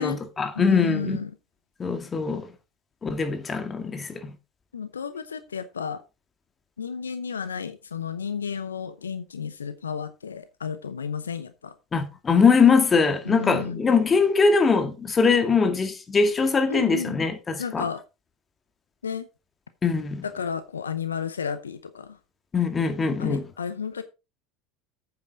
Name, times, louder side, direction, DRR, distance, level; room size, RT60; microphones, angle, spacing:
voice 1, 0.0-1.2 1.8-2.5 3.0-4.3 11.9-17.8 19.8-20.2 22.5-23.4, left 5 dB, 25° left, 2.0 m, -22 dB
voice 2, 0.5-1.3 4.7-6.0 6.8-11.7 13.2-13.8 16.7-17.2 17.6-18.0 19.0-19.3 20.2-22.2 23.2-24.0, left 6 dB, 85° left, 0.7 m, -32 dB
9.1 x 8.5 x 3.8 m
figure-of-eight pair, 75°, 0 cm